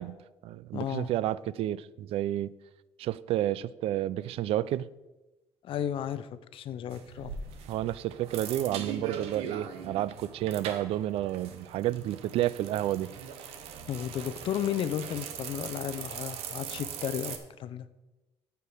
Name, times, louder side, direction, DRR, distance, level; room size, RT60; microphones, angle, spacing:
voice 1, 0.0-2.5 3.0-4.9 7.7-13.2, right 13 dB, 75° right, 0.4 m, -31 dB
voice 2, 0.7-1.1 5.6-7.4 13.9-17.9, left 10 dB, 60° left, 0.6 m, -34 dB
sound 1, 6.9-17.4, right 7 dB, 90° right, 1.0 m, -41 dB
13.5 x 4.6 x 5.0 m
cardioid pair, 95°, 10 cm